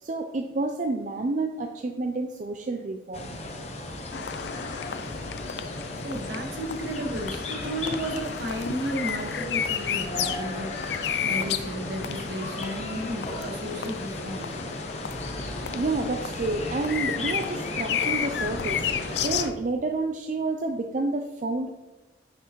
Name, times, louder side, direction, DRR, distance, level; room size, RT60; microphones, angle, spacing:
voice 1, 0.0-3.4 15.7-21.7, right 3 dB, 40° right, 5 dB, 0.4 m, -29 dB
sound 1, 3.1-19.5, left 1 dB, 35° left, 0.9 m, -36 dB
sound 2, 4.1-19.5, left 8 dB, 65° left, 0.4 m, -33 dB
voice 2, 6.0-14.6, right 1 dB, 70° right, 1 dB, 1.5 m, -33 dB
9.8 x 5.9 x 3.1 m, 1.1 s
head